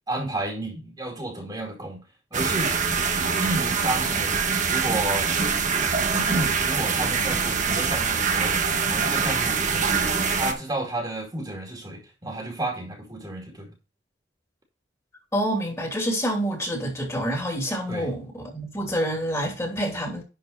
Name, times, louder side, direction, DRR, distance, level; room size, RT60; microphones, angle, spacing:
voice 1, 0.1-2.0 2.3-2.8 3.4-4.4 4.7-8.6 8.8-10.0 10.3-13.7 17.9-18.1, right 1 dB, 20° right, 2.4 m, -31 dB
sound 1, 2.3-10.5, right 5 dB, 45° right, 1.2 m, -24 dB
voice 2, 15.3-20.2, equal, 15° left, 2.8 m, -27 dB
11.0 x 4.6 x 4.0 m
head